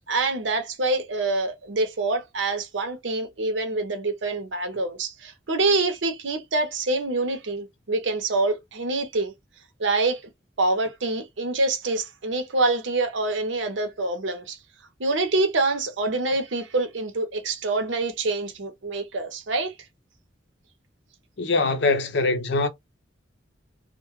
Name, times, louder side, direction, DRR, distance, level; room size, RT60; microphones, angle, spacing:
voice 1, 0.1-9.3 9.8-10.2 10.6-14.6 15.0-19.7, right 2 dB, 80° right, 0.7 m, -26 dB
voice 2, 21.4-22.7, left 3 dB, 65° left, 0.5 m, -22 dB
2.2 x 2.1 x 3.0 m
head